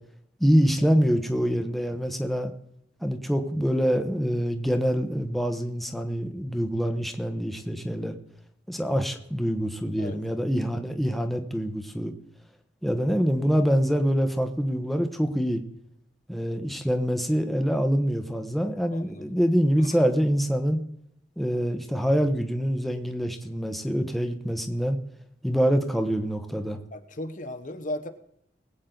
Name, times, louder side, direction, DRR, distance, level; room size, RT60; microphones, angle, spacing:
voice 1, 0.4-2.5 3.0-8.2 8.7-12.1 12.8-15.6 16.3-20.8 21.4-25.0 25.4-26.8, equal, ahead, 5 dB, 1.1 m, -25 dB
voice 2, 18.9-19.3 19.8-19.9 26.9-28.1, left 1 dB, 45° left, 9 dB, 1.0 m, -36 dB
21.0 x 8.5 x 3.9 m, 0.72 s
head